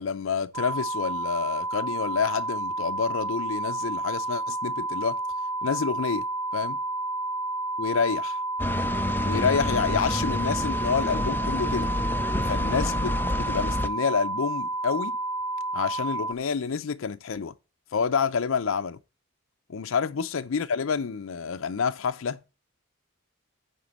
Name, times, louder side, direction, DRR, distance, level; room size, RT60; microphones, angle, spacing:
voice 1, 0.0-5.2 5.6-6.3 6.5-6.8 7.8-8.4 9.2-11.9 12.5-15.2 15.7-17.5 17.9-19.0 19.7-22.4, left 6 dB, 65° left, 0.5 m, -28 dB
sound 1, 0.5-16.3, right 2 dB, 90° right, 0.6 m, -30 dB
sound 2, 8.6-13.9, left 1 dB, 10° left, 0.4 m, -29 dB
9.2 x 4.3 x 7.2 m
head